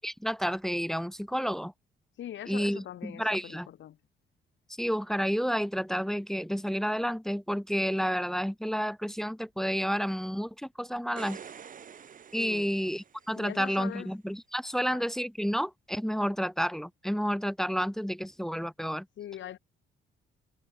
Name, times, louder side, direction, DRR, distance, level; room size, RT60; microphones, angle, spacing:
voice 1, 0.0-1.7 2.5-3.7 4.8-11.4 12.3-19.1, equal, ahead, 0.7 m, -30 dB
voice 2, 2.1-4.0 12.4-12.7 13.3-14.1 14.9-15.1 19.2-19.6, left 11 dB, 70° left, 2.9 m, -42 dB
sound 1, 11.0-13.5 16.6-16.7, right 7 dB, 40° right, 1.0 m, -47 dB
cardioid pair, 90°, 20 cm